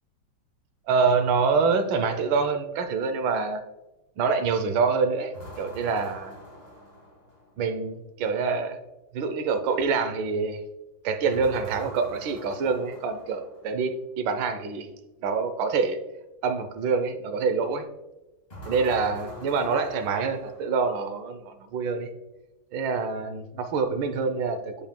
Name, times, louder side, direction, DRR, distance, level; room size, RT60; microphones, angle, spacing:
voice 1, 0.9-3.6 4.2-6.4 7.6-8.8 9.1-10.6 11.0-14.9 15.2-16.0 16.4-17.9 18.7-22.1 22.7-24.9, right 5 dB, 75° right, 9 dB, 1.4 m, -26 dB
sound 1, 5.3-7.7 11.3-13.8 18.5-21.1, equal, 20° left, 1.8 m, -44 dB
8.8 x 5.4 x 2.2 m, 1.1 s
omnidirectional pair, 2.2 m